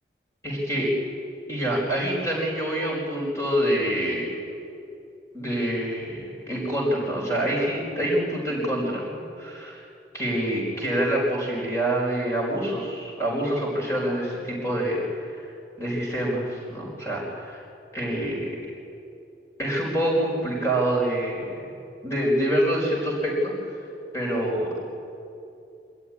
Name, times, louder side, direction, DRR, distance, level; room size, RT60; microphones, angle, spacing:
voice 1, 0.4-0.9 1.5-4.3 5.3-9.8 10.1-15.0 15.3-15.4 15.8-17.6 17.9-18.5 19.6-21.6 22.0-23.5 24.1-24.8, right 1 dB, 15° left, -4 dB, 4.9 m, -26 dB
25.5 x 13.0 x 9.8 m, 2.7 s
head